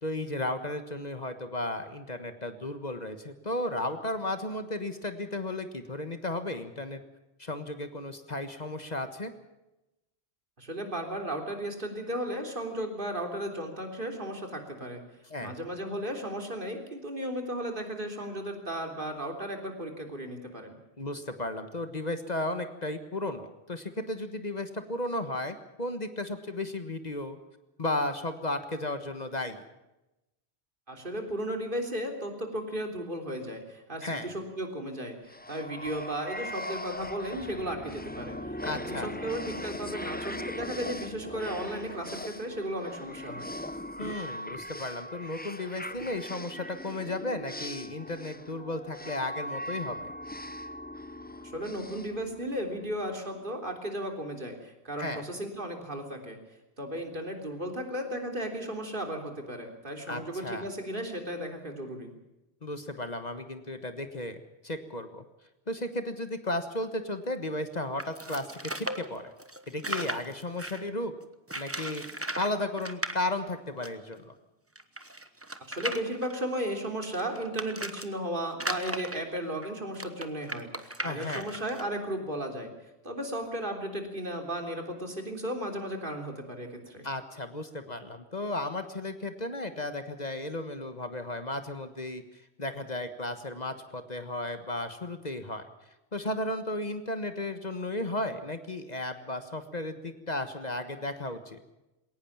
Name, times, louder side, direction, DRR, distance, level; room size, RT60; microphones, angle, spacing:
voice 1, 0.0-7.0 7.4-9.3 15.3-15.5 21.0-27.4 27.8-29.6 34.0-34.3 38.6-39.1 44.0-50.1 55.0-55.2 60.1-60.7 62.6-65.2 65.7-69.2 69.7-71.1 71.5-72.0 72.4-74.3 81.0-81.5 87.0-95.7 96.1-101.6, left 1 dB, 40° left, 9 dB, 1.6 m, -34 dB
voice 2, 10.6-15.0 15.4-20.8 30.9-38.4 38.7-43.5 51.5-56.4 56.8-62.1 75.7-82.7 83.0-87.0, right 1 dB, 55° right, 4 dB, 3.6 m, -35 dB
sound 1, 35.3-52.9, left 1 dB, 10° left, 0.7 m, -40 dB
sound 2, 68.0-70.9 71.5-72.5 72.8-73.1 73.8-73.9 74.1-74.2 74.8-78.1 78.5-81.8, right 1 dB, 15° right, 1.2 m, -36 dB
21.0 x 18.5 x 7.3 m, 0.95 s
omnidirectional pair, 1.1 m